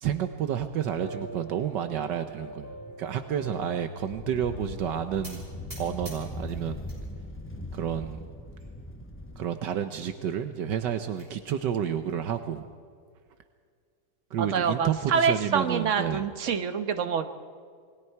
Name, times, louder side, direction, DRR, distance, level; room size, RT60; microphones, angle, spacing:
voice 1, 0.0-2.7 3.0-5.5 5.8-6.8 7.7-8.2 9.4-12.6 14.3-16.3, right 9 dB, 75° right, 9 dB, 1.5 m, -30 dB
sound 1, 0.9-6.1, equal, 60° left, 2.1 m, -44 dB
sound 2, 4.1-9.5, left 1 dB, 15° left, 0.4 m, -40 dB
sound 3, 5.2-7.0 7.4-8.0 8.6-8.7 9.0-9.1 9.4-9.5 10.7-11.3, right 1 dB, 30° right, 6.0 m, -48 dB
voice 2, 14.4-17.2, right 6 dB, 45° right, 8 dB, 1.4 m, -26 dB
28.0 x 20.0 x 4.6 m, 2.1 s
omnidirectional pair, 1.9 m